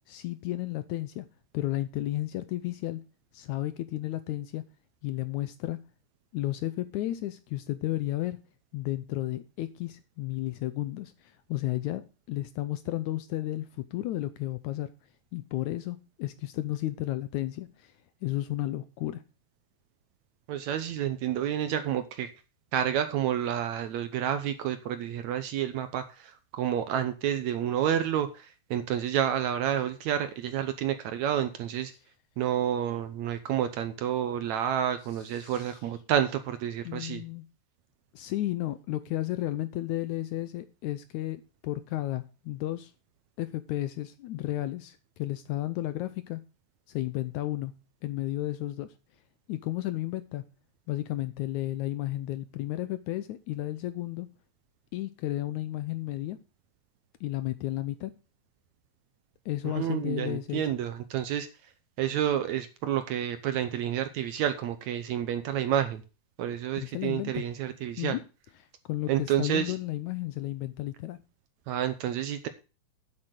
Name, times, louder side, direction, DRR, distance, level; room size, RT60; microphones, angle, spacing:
voice 1, 0.1-1.3 1.5-3.0 3.3-4.6 5.0-5.8 6.3-8.4 8.7-14.9 15.3-17.9 18.2-19.2 35.4-35.7 36.9-37.4 38.1-42.9 43.4-46.4 46.9-47.8 48.0-48.9 49.5-50.4 50.9-54.3 54.9-56.4 57.2-58.1 59.5-60.6 66.8-67.4 68.0-68.2 68.9-71.2, left 15 dB, 75° left, 12 dB, 1.8 m, -33 dB
voice 2, 20.5-22.3 22.7-31.9 32.4-37.2 59.6-61.5 62.0-66.0 66.4-68.2 69.1-69.8 71.7-72.5, right 10 dB, 70° right, 10 dB, 1.8 m, -29 dB
9.0 x 7.8 x 6.4 m, 0.33 s
omnidirectional pair, 3.9 m